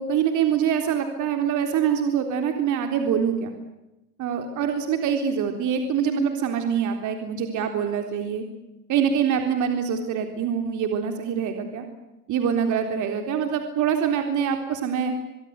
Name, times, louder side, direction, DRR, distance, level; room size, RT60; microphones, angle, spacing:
voice 1, 0.0-3.5 4.2-8.4 8.9-11.9 12.3-15.1, right 7 dB, 40° right, 5 dB, 3.8 m, -24 dB
25.5 x 23.0 x 8.2 m, 0.95 s
hypercardioid pair, 110°, 46 cm